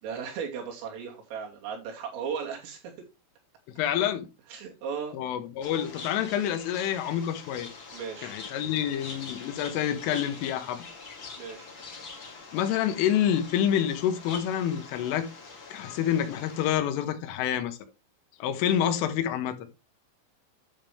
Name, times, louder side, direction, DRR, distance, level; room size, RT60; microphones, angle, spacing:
voice 1, 0.0-2.9 4.5-5.2 7.9-8.4 11.4-11.7, right 6 dB, 80° right, 5.2 m, -36 dB
voice 2, 3.8-4.3 5.1-7.7 8.2-10.8 12.5-15.3 15.7-17.8 18.4-19.6, left 10 dB, 80° left, 3.6 m, -27 dB
sound 1, 5.6-16.7, left 4 dB, 40° left, 1.7 m, -44 dB
10.5 x 7.3 x 3.4 m
omnidirectional pair, 5.8 m